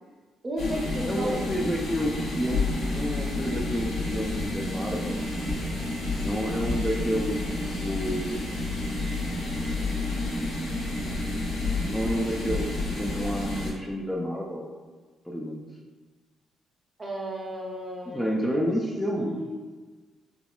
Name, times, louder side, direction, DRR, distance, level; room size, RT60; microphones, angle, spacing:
voice 1, 0.4-1.6 17.0-18.7 19.2-19.6, equal, 30° right, -2 dB, 0.6 m, -33 dB
sound 1, 0.6-13.7, left 2 dB, 85° left, 0.8 m, -30 dB
voice 2, 1.0-5.2 6.2-8.5 11.9-14.7 15.3-15.6 18.1-19.4, equal, 10° left, -2 dB, 0.3 m, -30 dB
3.6 x 2.0 x 2.3 m, 1.3 s
cardioid pair, 90°, 0 cm